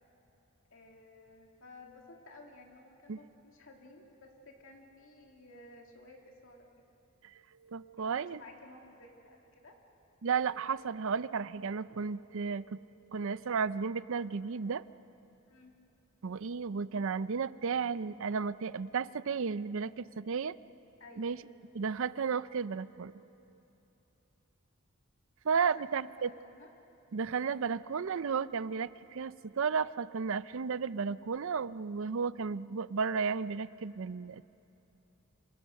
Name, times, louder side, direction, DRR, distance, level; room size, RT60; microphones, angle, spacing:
voice 1, 0.7-6.8 7.9-9.8 15.5-15.8 21.0-21.3 25.6-25.9 26.2-26.7, left 2 dB, 65° left, 1 dB, 2.5 m, -55 dB
voice 2, 7.6-8.4 10.2-12.8 13.1-14.8 16.2-20.5 21.2-21.4 21.7-23.2 25.4-26.3 27.1-34.4, right 5 dB, 65° right, 16 dB, 0.5 m, -33 dB
28.0 x 26.5 x 6.5 m, 3.0 s
head